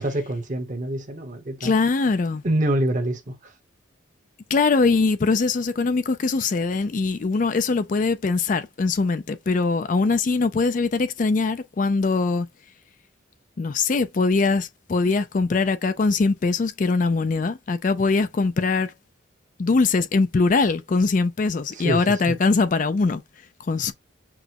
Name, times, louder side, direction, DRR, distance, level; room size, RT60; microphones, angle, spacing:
voice 1, 0.0-1.7 2.4-3.5 21.7-22.4, right 1 dB, 40° right, 0.9 m, -26 dB
voice 2, 1.6-2.4 4.5-12.5 13.6-18.9 19.6-23.2 23.7-23.9, left 4 dB, 40° left, 0.4 m, -22 dB
6.1 x 2.1 x 2.9 m
head